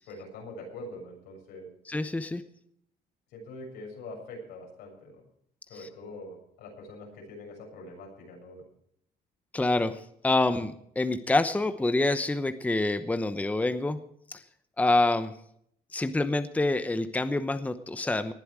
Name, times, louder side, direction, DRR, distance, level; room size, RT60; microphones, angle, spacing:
voice 1, 0.1-1.7 3.3-5.2 5.7-8.6, left 2 dB, 85° left, 1 dB, 7.2 m, -44 dB
voice 2, 1.9-2.4 5.7-5.9 9.5-14.0 14.3-14.4 14.8-15.4 15.9-18.3, left 2 dB, 10° left, 10 dB, 0.9 m, -27 dB
19.0 x 11.0 x 4.8 m, 0.70 s
cardioid pair, 110°, 17 cm